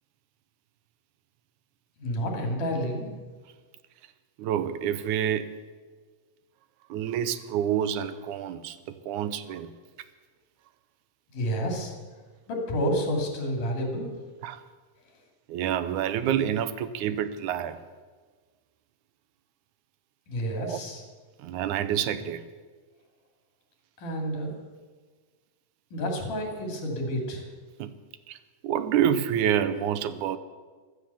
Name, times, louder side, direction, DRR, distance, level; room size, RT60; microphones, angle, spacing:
voice 1, 2.0-3.1 11.3-11.9 12.5-14.1 20.3-21.0 24.0-24.5 25.9-27.4, equal, 80° left, 2 dB, 4.5 m, -29 dB
voice 2, 4.4-5.5 6.9-9.7 14.4-14.6 15.5-17.8 20.5-20.8 21.4-22.4 27.8-27.9 28.3-28.4 28.6-30.4, right 9 dB, 80° right, 13 dB, 2.1 m, -28 dB
15.0 x 12.5 x 7.0 m, 1.4 s
omnidirectional pair, 3.6 m